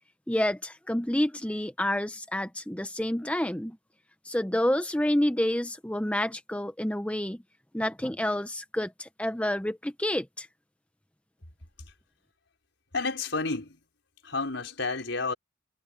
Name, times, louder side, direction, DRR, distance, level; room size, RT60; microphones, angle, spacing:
voice 1, 0.3-3.8 4.2-7.4 7.7-10.5, left 1 dB, 5° left, 0.7 m, -29 dB
voice 2, 12.9-13.8 14.2-15.3, left 3 dB, 75° left, 4.9 m, -30 dB
head